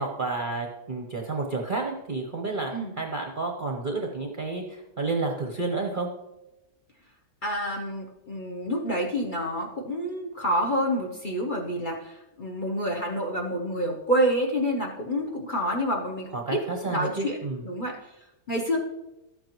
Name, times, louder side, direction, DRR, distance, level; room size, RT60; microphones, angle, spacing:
voice 1, 0.0-6.1 16.3-17.6, right 3 dB, 40° right, 2 dB, 0.8 m, -30 dB
voice 2, 7.4-16.6 16.9-17.4 17.6-18.0 18.5-18.8, equal, 35° left, 0 dB, 0.9 m, -28 dB
12.5 x 7.8 x 3.0 m, 0.95 s
omnidirectional pair, 1.8 m